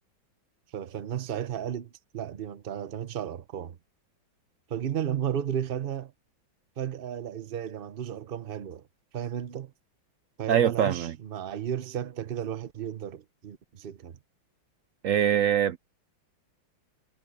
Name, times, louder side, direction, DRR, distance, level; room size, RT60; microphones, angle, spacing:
voice 1, 0.7-3.8 4.7-6.1 6.8-8.9 9.1-9.7 10.4-14.2, right 9 dB, 55° right, 0.6 m, -34 dB
voice 2, 10.5-11.1 15.0-15.8, right 9 dB, 85° right, 0.7 m, -23 dB
omnidirectional pair, 2.1 m